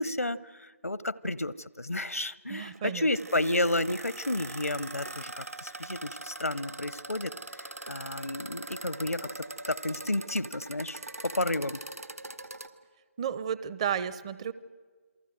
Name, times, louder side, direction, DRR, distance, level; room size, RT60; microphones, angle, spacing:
voice 1, 0.0-11.8, left 1 dB, 80° left, 19 dB, 0.9 m, -32 dB
voice 2, 2.5-3.1 13.2-14.5, right 8 dB, 25° right, 16 dB, 0.7 m, -32 dB
sound 1, 2.7-12.7, right 2 dB, 80° right, 1.9 m, -42 dB
28.0 x 23.5 x 7.8 m, 1.5 s
figure-of-eight pair, 150°, 8 cm